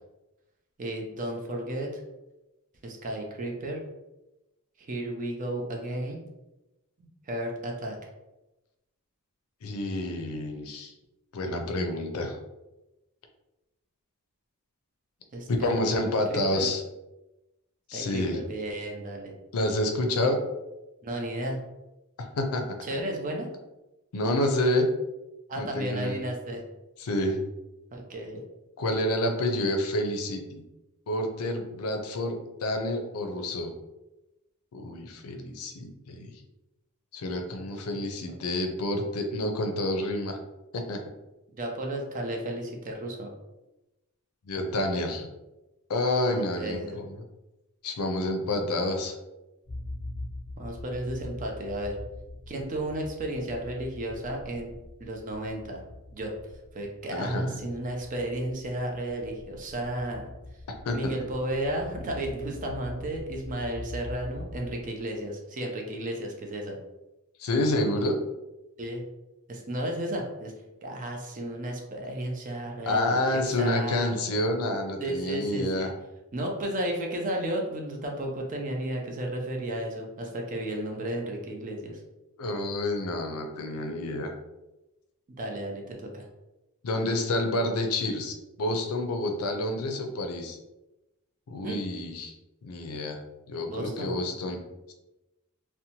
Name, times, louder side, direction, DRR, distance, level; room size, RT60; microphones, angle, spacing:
voice 1, 0.8-1.9 2.8-3.8 4.8-6.2 7.3-8.0 15.3-16.7 17.9-19.4 21.0-21.6 22.9-23.5 25.5-26.6 27.9-28.4 41.6-43.4 46.3-47.0 50.6-52.0 52.5-54.7 55.0-55.8 56.1-56.3 56.7-60.3 60.9-66.8 68.8-69.1 69.5-70.5 70.8-74.2 75.0-75.9 76.3-82.0 85.4-86.2 91.6-91.8 93.6-94.2, right 1 dB, 35° right, 1 dB, 0.5 m, -33 dB
voice 2, 9.6-10.9 11.3-12.4 15.5-16.8 17.9-18.4 19.5-20.4 22.4-22.8 24.1-24.9 25.6-26.2 27.0-27.4 28.8-30.6 31.1-33.7 34.7-36.4 37.1-40.4 40.7-41.0 44.5-45.3 45.9-47.2 47.8-49.2 57.1-57.6 60.8-61.1 67.4-68.2 72.9-75.9 82.4-84.3 86.8-90.6 91.5-92.3 92.6-93.2 93.5-94.6, left 1 dB, 75° left, 5 dB, 0.5 m, -28 dB
sound 1, 49.6-65.3, left 1 dB, 15° left, 0.6 m, -43 dB
2.7 x 2.1 x 2.8 m, 0.99 s
head